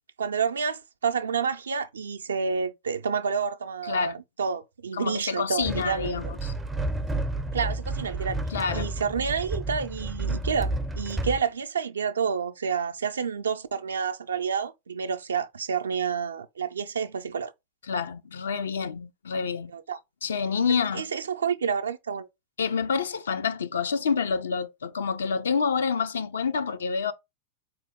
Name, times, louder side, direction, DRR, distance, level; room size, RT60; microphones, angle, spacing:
voice 1, 0.2-6.3 7.5-8.4 8.7-17.5 19.7-20.0 20.7-22.3, right 6 dB, 70° right, 0.4 m, -29 dB
voice 2, 3.8-4.2 4.9-6.5 8.5-8.9 17.9-19.7 20.2-21.1 22.6-27.1, left 5 dB, 65° left, 0.4 m, -28 dB
sound 1, 5.6-11.4, right 2 dB, 10° right, 0.4 m, -31 dB
3.9 x 3.0 x 3.5 m
figure-of-eight pair, 90°, 0 cm